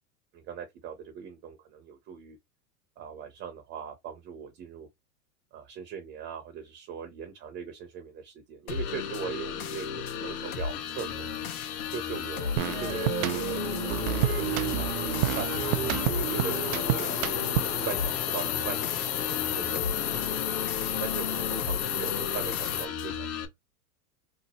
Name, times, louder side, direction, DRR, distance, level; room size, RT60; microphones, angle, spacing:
voice 1, 0.3-2.4 3.0-4.9 5.5-9.9 10.1-11.3 11.9-15.8 16.1-17.1 17.7-20.4 21.0-23.4, right 7 dB, 25° right, 0.7 m, -40 dB
sound 1, 8.7-23.4, left 7 dB, 60° left, 1.1 m, -34 dB
sound 2, 10.7-22.9, left 10 dB, 85° left, 0.9 m, -33 dB
sound 3, 12.6-17.9, right 13 dB, 65° right, 0.5 m, -30 dB
3.0 x 2.0 x 4.1 m
hypercardioid pair, 130°, 47 cm